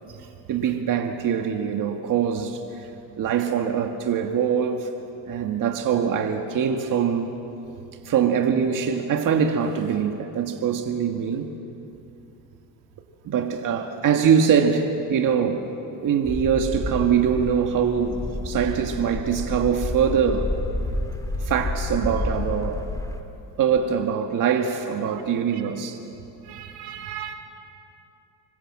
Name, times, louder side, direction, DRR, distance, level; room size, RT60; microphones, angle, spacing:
voice 1, 0.5-2.6 3.2-4.9 5.3-7.3 8.1-11.5 13.3-15.7 16.0-20.6 21.4-22.9 23.6-26.0, right 7 dB, 60° right, 1.8 m, -23 dB
sound 1, 16.2-23.2, left 2 dB, 10° left, 2.4 m, -30 dB
voice 2, 26.4-27.3, right 10 dB, 90° right, 2.4 m, -37 dB
26.5 x 23.5 x 7.6 m
cardioid pair, 110°, 36 cm